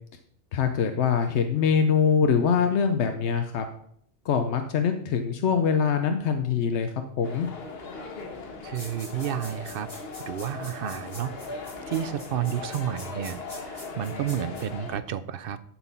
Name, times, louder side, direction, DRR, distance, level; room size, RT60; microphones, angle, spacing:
voice 1, 0.5-3.6 4.2-6.9 7.2-7.5, left 6 dB, 90° left, 6 dB, 1.0 m, -23 dB
sound 1, 7.2-15.0, left 3 dB, 65° left, 1.4 m, -39 dB
voice 2, 8.6-9.9 10.3-11.3 11.9-15.7, right 10 dB, 65° right, 14 dB, 0.7 m, -31 dB
sound 2, 8.7-14.6, left 1 dB, 25° left, 3.6 m, -44 dB
11.0 x 4.4 x 5.5 m, 0.66 s
omnidirectional pair, 1.1 m